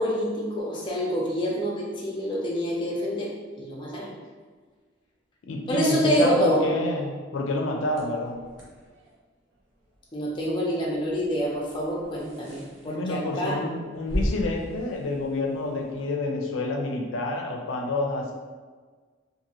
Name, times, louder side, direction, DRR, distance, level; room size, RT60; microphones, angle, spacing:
voice 1, 0.0-3.3 3.6-4.1 5.7-6.6 10.1-13.6, equal, 25° left, -4 dB, 0.5 m, -27 dB
voice 2, 5.5-8.4 12.9-18.3, left 2 dB, 85° left, 1 dB, 0.4 m, -28 dB
sound 1, 7.8-16.1, equal, 90° right, 0.8 m, -38 dB
2.5 x 2.5 x 2.9 m, 1.5 s
head